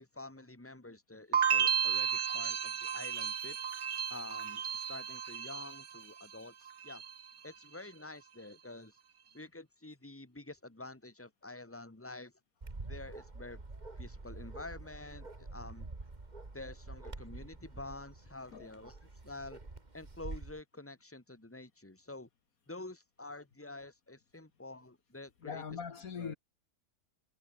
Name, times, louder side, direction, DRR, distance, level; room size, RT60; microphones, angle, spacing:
voice 1, 0.0-3.6 4.1-7.0 7.4-9.0 9.3-12.3 12.9-13.6 14.0-15.9 16.5-19.6 19.9-22.3 22.7-25.6 26.2-26.4, left 2 dB, 10° left, 2.3 m, -48 dB
sound 1, 1.3-6.4 6.7-7.3, right 8 dB, 50° right, 1.3 m, -33 dB
Bark, 12.6-20.6, right 3 dB, 30° right, 2.4 m, -47 dB
voice 2, 25.4-26.3, left 6 dB, 65° left, 1.9 m, -41 dB
omnidirectional pair, 1.6 m